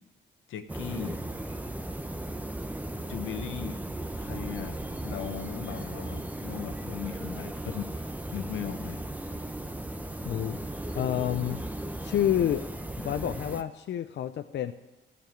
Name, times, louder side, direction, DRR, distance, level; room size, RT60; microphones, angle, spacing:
voice 1, 0.5-1.2 3.1-3.8 4.2-9.0, left 8 dB, 85° left, 8 dB, 1.1 m, -38 dB
sound 1, 0.7-13.6, right 1 dB, 10° right, 0.8 m, -36 dB
voice 2, 10.2-10.6 10.9-11.6 12.0-12.6 13.0-14.7, left 11 dB, 60° left, 8 dB, 0.6 m, -28 dB
14.5 x 7.0 x 9.0 m, 1.1 s
cardioid pair, 90°, 20 cm